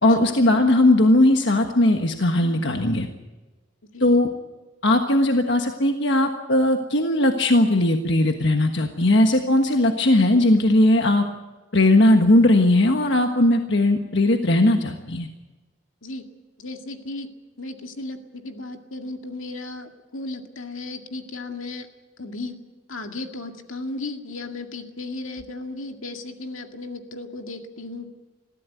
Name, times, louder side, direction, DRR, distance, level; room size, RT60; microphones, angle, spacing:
voice 1, 0.0-3.1 4.0-4.3 4.8-11.2 11.7-15.3, left 1 dB, 60° left, 4 dB, 1.4 m, -18 dB
voice 2, 16.6-17.3 17.6-21.9 22.2-22.6 22.9-28.1, left 2 dB, 80° left, 4 dB, 2.1 m, -35 dB
22.0 x 15.0 x 9.3 m, 1.2 s
head